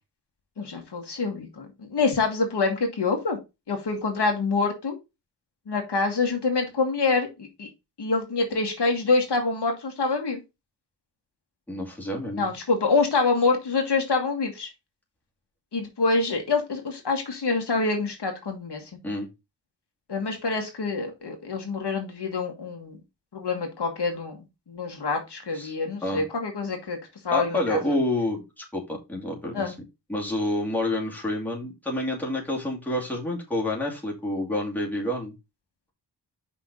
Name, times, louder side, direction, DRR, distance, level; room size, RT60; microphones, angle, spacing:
voice 1, 0.6-3.4 3.7-5.0 5.7-7.7 8.0-10.4 12.4-14.7 15.7-18.8 20.1-23.0 23.3-27.0 27.2-27.8 29.5-29.7, left 3 dB, 65° left, 2 dB, 1.8 m, -26 dB
voice 2, 11.7-12.5 19.0-19.3 25.5-25.8 26.0-26.2 27.3-29.7 30.1-35.3, left 1 dB, 5° left, -3 dB, 2.4 m, -28 dB
5.7 x 4.1 x 5.3 m, 0.24 s
wide cardioid pair, 120°, 44 cm